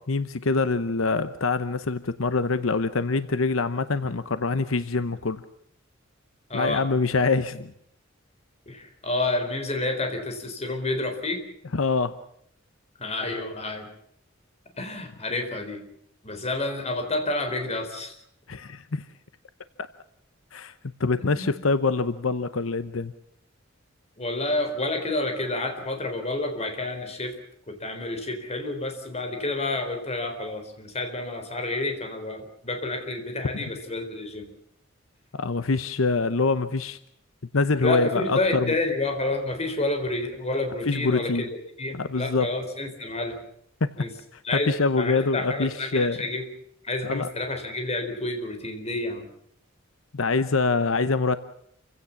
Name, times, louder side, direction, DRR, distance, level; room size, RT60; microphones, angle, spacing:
voice 1, 0.0-5.4 6.5-7.7 11.7-12.2 18.5-19.0 20.5-20.7 21.0-23.1 35.3-37.0 37.5-38.7 40.9-41.5 41.9-42.5 43.8-43.9 44.3-46.2 47.0-47.3 50.1-51.4, left 3 dB, 85° left, 13 dB, 0.9 m, -25 dB
voice 2, 6.5-6.9 8.7-11.4 13.0-13.9 14.8-15.8 16.2-18.1 21.2-21.5 24.2-27.4 27.7-34.5 37.8-41.5 41.8-43.4 44.0-44.1 44.4-46.5 46.8-49.3, left 2 dB, 35° left, 5 dB, 4.2 m, -29 dB
28.0 x 16.5 x 7.3 m, 0.71 s
head